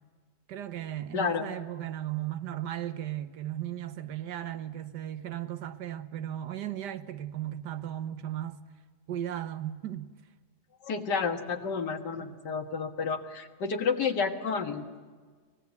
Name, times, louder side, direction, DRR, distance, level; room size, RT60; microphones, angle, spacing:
voice 1, 0.5-8.6 9.1-10.1, right 12 dB, 85° right, 1.5 m, -36 dB
voice 2, 1.1-1.5 10.8-14.8, left 5 dB, 85° left, 2.2 m, -30 dB
24.0 x 19.5 x 8.4 m
omnidirectional pair, 1.8 m